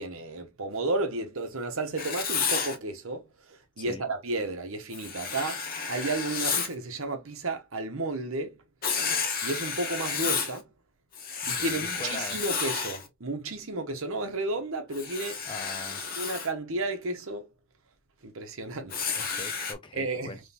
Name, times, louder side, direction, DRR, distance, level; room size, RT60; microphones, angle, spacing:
voice 1, 0.0-8.5 9.4-10.7 11.5-15.4 16.2-17.5 18.2-19.3 19.9-20.4, right 2 dB, 65° right, 0.9 m, -33 dB
Writing, 2.0-2.8 4.9-6.7 8.8-10.6 11.1-13.1 14.9-16.5 18.9-19.7, left 5 dB, 40° left, 0.9 m, -31 dB
voice 2, 11.5-12.4 15.4-16.0 19.1-20.4, left 3 dB, 20° left, 0.5 m, -42 dB
3.6 x 3.1 x 2.9 m
head